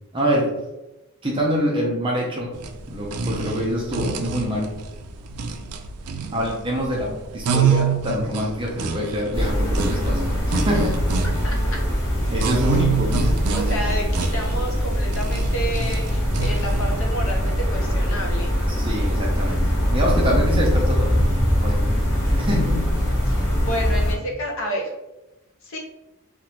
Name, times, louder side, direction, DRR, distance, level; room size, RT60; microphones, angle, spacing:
voice 1, 0.1-0.5 1.2-2.5 2.9-4.7 6.3-11.0 12.3-13.2 18.8-21.2 21.6-22.9, equal, 25° right, -2 dB, 0.5 m, -25 dB
sound 1, 2.5-17.0, right 6 dB, 85° right, 0.3 m, -28 dB
sound 2, 9.3-24.1, equal, 15° left, 0.8 m, -22 dB
voice 2, 11.2-11.6 13.5-18.5 23.3-24.9 25.6-25.8, equal, 60° left, 0 dB, 0.6 m, -30 dB
2.9 x 2.1 x 2.8 m, 0.97 s
head